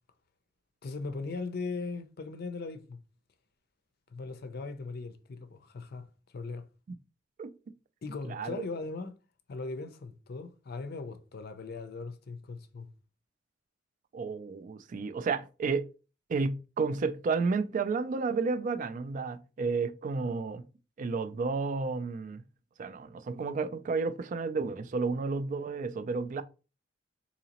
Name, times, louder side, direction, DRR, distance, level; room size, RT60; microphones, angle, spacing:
voice 1, 0.8-3.0 4.1-6.0 6.3-6.6 8.0-9.2 9.5-12.9, left 3 dB, 55° left, 0.5 m, -39 dB
voice 2, 8.3-8.6 14.1-15.9 16.3-20.6 21.0-22.4 22.8-26.4, right 4 dB, 45° right, 0.3 m, -31 dB
3.9 x 2.8 x 2.8 m
head